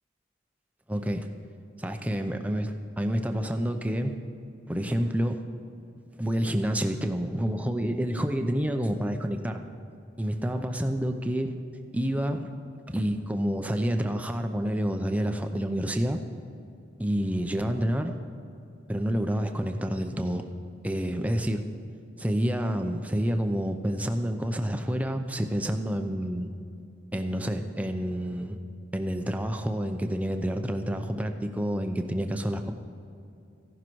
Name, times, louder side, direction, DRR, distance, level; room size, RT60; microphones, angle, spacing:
voice 1, 0.9-1.3 1.8-2.7 3.0-4.2 4.7-5.4 6.2-9.6 10.2-11.5 11.9-12.5 12.9-16.2 17.0-18.2 18.9-20.5 20.8-21.6 22.2-26.5 27.1-28.6 28.9-32.7, equal, 5° right, 5 dB, 0.6 m, -28 dB
15.0 x 11.5 x 4.6 m, 2.6 s
head